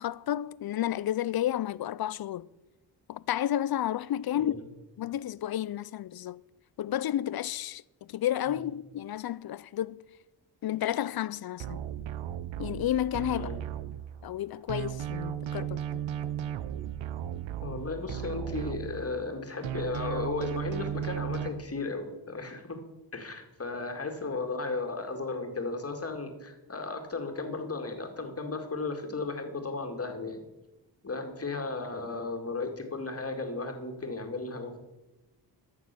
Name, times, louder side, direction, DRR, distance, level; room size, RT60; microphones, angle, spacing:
voice 1, 0.0-2.5 3.1-4.5 5.0-6.4 6.8-7.8 8.1-10.0 10.6-11.9 12.6-13.5 14.2-16.0, left 12 dB, 55° left, 0.5 m, -31 dB
sound 1, 11.6-14.4 14.7-19.3 19.6-21.5, right 10 dB, 90° right, 0.7 m, -35 dB
voice 2, 13.3-13.6 17.6-22.8 23.1-30.4 31.0-34.8, left 3 dB, 30° left, 2.1 m, -35 dB
13.5 x 6.7 x 6.8 m
cardioid pair, 80°, 44 cm